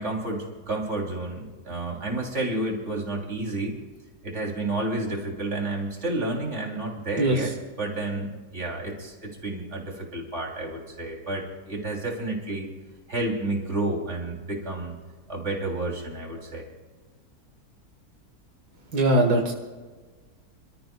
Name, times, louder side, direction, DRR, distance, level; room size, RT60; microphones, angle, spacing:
voice 1, 0.0-3.7 4.2-7.5 7.8-12.7 13.1-14.9 15.3-16.6, right 2 dB, 45° right, -1 dB, 3.5 m, -30 dB
voice 2, 7.2-7.5 18.9-19.5, right 1 dB, 85° right, 1 dB, 2.2 m, -21 dB
28.0 x 13.5 x 2.3 m, 1.4 s
omnidirectional pair, 1.6 m